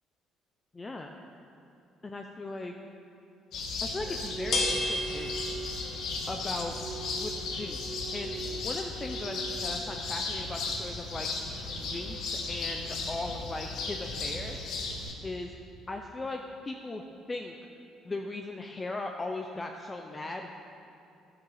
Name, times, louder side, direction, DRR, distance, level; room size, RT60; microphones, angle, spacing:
voice 1, 0.7-1.1 2.0-2.7 3.8-5.4 6.3-6.8 7.1-11.3 11.7-14.6 15.2-15.5 15.9-17.0 17.3-17.5 18.0-20.5, left 2 dB, 20° left, 3 dB, 0.5 m, -38 dB
sound 1, 3.5-15.1, left 3 dB, 65° left, 1.2 m, -36 dB
sound 2, 3.5-15.0, left 2 dB, 40° left, 1.2 m, -40 dB
sound 3, 3.9-9.7, right 3 dB, 25° right, 1.5 m, -42 dB
11.5 x 7.8 x 4.8 m, 2.7 s
cardioid pair, 150°, 0 cm